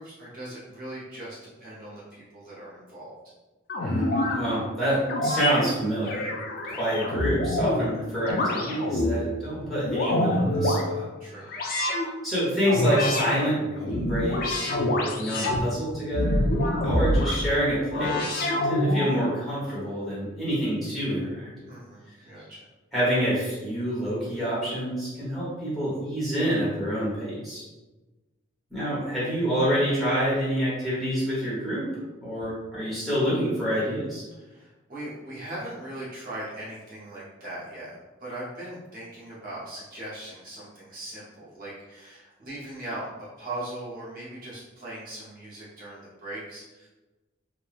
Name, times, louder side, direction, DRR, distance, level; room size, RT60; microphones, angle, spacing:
voice 1, 0.0-3.1 6.5-6.6 11.2-11.5 21.7-22.7 34.3-46.9, right 1 dB, 45° right, -8 dB, 0.6 m, -39 dB
sound 1, 3.7-4.4 5.1-5.6 6.0-7.9 8.3-9.2 9.7-10.8 11.5-12.1 12.6-13.3 13.8-15.6 16.1-17.4 17.9-19.1, left 1 dB, 45° left, 0.3 m, -26 dB
voice 2, 3.8-6.3 6.7-11.0 12.2-16.4 16.8-21.7 22.9-27.6 28.7-31.8 32.2-34.2, equal, ahead, -10 dB, 0.9 m, -27 dB
2.9 x 2.2 x 2.3 m, 1.1 s
head